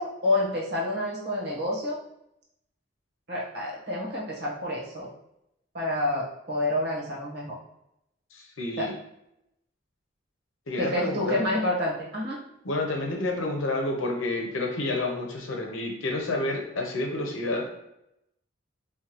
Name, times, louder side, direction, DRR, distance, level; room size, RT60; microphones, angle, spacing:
voice 1, 0.0-2.0 3.3-5.1 5.7-7.5 8.8-8.9 10.8-12.4, left 1 dB, 55° right, -5 dB, 1.2 m, -28 dB
voice 2, 8.3-8.9 10.7-11.4 12.6-17.7, left 2 dB, 90° left, 2 dB, 0.8 m, -29 dB
3.7 x 2.4 x 3.0 m, 0.83 s
head